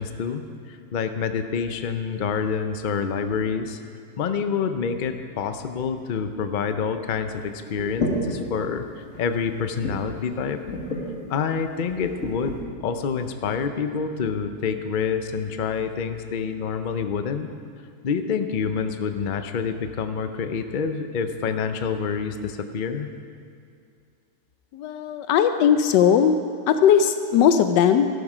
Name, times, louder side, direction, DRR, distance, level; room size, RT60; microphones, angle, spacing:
voice 1, 0.0-3.8 4.2-8.9 9.2-10.6 11.3-17.5 18.0-23.1, left 6 dB, 70° left, 8 dB, 0.4 m, -27 dB
sound 1, 7.8-8.6 9.1-9.3 9.8-10.2 10.7-11.1 11.8-12.6, left 1 dB, 45° left, 2.2 m, -29 dB
voice 2, 24.7-26.4 26.7-28.1, left 8 dB, 85° left, 9 dB, 1.2 m, -18 dB
13.5 x 12.0 x 5.0 m, 2.4 s
omnidirectional pair, 1.8 m